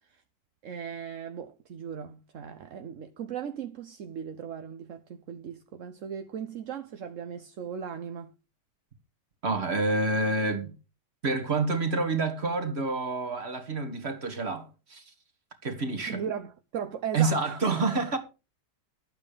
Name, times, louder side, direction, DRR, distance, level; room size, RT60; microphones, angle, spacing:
voice 1, 0.6-8.3 16.1-17.6, right 8 dB, 55° right, 1.1 m, -37 dB
voice 2, 9.4-10.7 11.2-15.0 15.6-16.2 17.1-18.2, right 3 dB, 35° right, 2.2 m, -28 dB
12.0 x 8.8 x 5.0 m
omnidirectional pair, 1.9 m